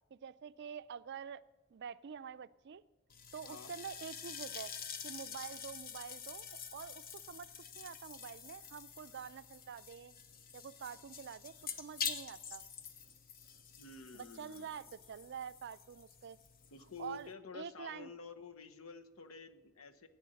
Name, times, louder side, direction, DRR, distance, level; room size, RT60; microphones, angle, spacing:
voice 1, 0.1-1.4 1.7-2.8 3.3-4.7 5.0-10.1 10.5-12.6 14.1-16.4 17.0-18.1, right 7 dB, 55° right, 16 dB, 0.4 m, -47 dB
sound 1, 3.1-17.3, left 6 dB, 45° left, 1.0 m, -47 dB
voice 2, 13.8-14.7 16.7-20.1, left 5 dB, 80° left, 9 dB, 1.0 m, -50 dB
14.0 x 9.1 x 6.4 m, 1.2 s
head